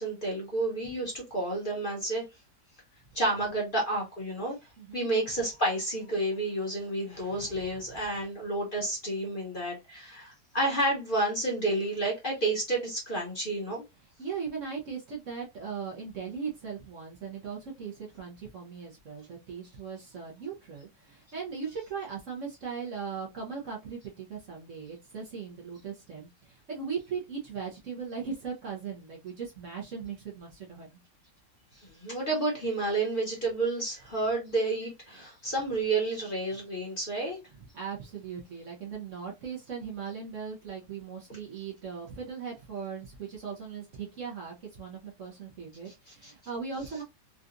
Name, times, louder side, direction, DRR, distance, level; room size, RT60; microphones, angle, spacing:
voice 1, 0.0-2.2 3.1-4.6 4.9-13.8 31.8-37.4 46.2-46.3, right 2 dB, 35° left, 1.0 m, -30 dB
voice 2, 4.8-5.1 7.3-7.7 7.9-8.1 14.2-30.9 36.5-36.6 37.6-47.0, right 6 dB, 55° right, 1.0 m, -39 dB
3.8 x 2.3 x 2.5 m
omnidirectional pair, 1.8 m